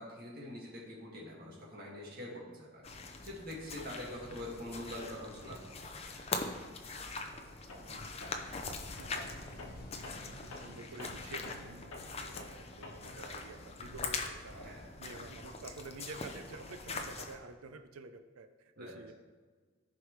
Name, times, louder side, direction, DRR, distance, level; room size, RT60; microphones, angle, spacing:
voice 1, 0.0-2.8 3.2-5.6 14.6-14.8 18.8-18.9, left 1 dB, 45° right, -3 dB, 2.1 m, -44 dB
sound 1, 2.8-17.4, left 4 dB, 30° left, 0.6 m, -43 dB
Tools, 7.7-7.9 8.2-13.3, left 2 dB, 75° left, 1.3 m, -49 dB
voice 2, 7.8-8.1 9.0-9.5 10.1-14.7 15.0-19.1, right 3 dB, 85° right, 9 dB, 0.6 m, -50 dB
sound 2, 8.2-13.5, equal, 45° left, 1.5 m, -57 dB
14.5 x 4.9 x 3.2 m, 1.4 s
head